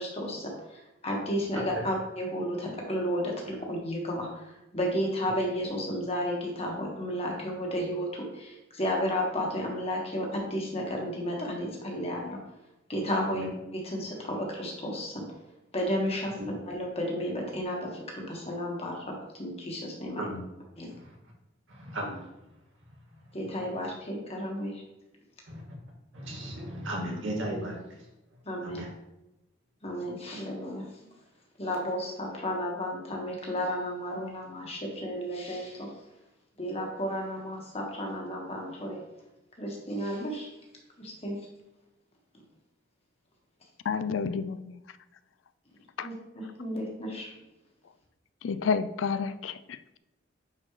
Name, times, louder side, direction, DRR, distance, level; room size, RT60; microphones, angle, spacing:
voice 1, 0.0-12.4 12.9-15.2 15.7-16.3 16.7-20.2 20.8-20.9 23.3-24.8 28.4-28.8 29.8-30.8 31.6-35.9 36.6-39.0 39.6-40.5 41.0-41.4 46.0-47.3, equal, 30° left, -1 dB, 1.6 m, -33 dB
voice 2, 1.5-1.8 2.6-2.7 13.3-13.5 16.4-16.6 20.2-20.4 21.7-22.2 25.5-25.6 26.1-27.8 28.6-28.9, right 1 dB, 90° right, -2 dB, 2.1 m, -35 dB
voice 3, 43.9-44.8 46.0-46.1 48.4-50.0, left 5 dB, 85° left, 14 dB, 0.4 m, -30 dB
9.5 x 4.4 x 3.2 m, 0.96 s
head